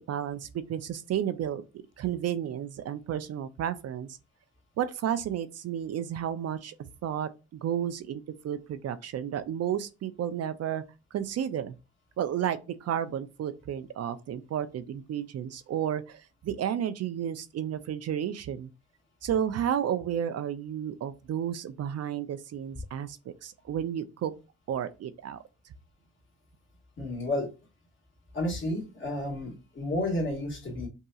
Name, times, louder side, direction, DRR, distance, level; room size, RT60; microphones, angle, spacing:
voice 1, 0.0-1.6 2.0-4.2 4.8-6.8 7.0-10.8 11.1-11.8 12.2-18.7 19.2-24.3 24.7-25.4, right 9 dB, 55° right, 0.5 m, -32 dB
voice 2, 27.0-27.5 28.3-30.9, left 1 dB, 40° left, 2.0 m, -31 dB
5.4 x 2.8 x 2.3 m
cardioid pair, 90°, 30 cm